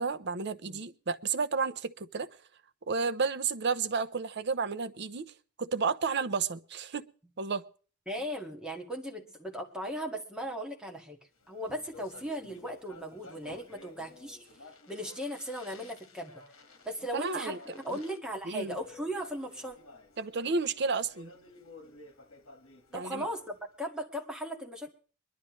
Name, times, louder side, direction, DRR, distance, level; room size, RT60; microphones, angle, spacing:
voice 1, 0.0-2.3 2.9-5.3 5.6-7.1 7.4-7.6 17.1-17.6 17.9-18.0 18.5-18.8 20.2-21.3 22.9-23.3, right 4 dB, 55° right, 0.7 m, -31 dB
voice 2, 8.1-11.2 11.5-14.5 14.9-16.3 16.9-19.8 22.9-24.9, equal, 5° right, 1.9 m, -37 dB
Speech, 11.4-23.8, left 3 dB, 70° left, 1.8 m, -54 dB
22.5 x 11.5 x 3.2 m
head